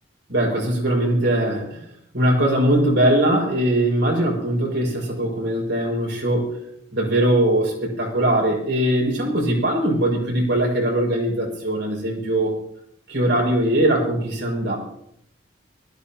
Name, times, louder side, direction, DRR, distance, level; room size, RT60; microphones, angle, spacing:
voice 1, 0.3-1.8 2.1-6.6 6.9-12.6 13.1-14.8, right 1 dB, 75° right, -2 dB, 6.1 m, -21 dB
21.0 x 14.5 x 3.0 m, 0.75 s
head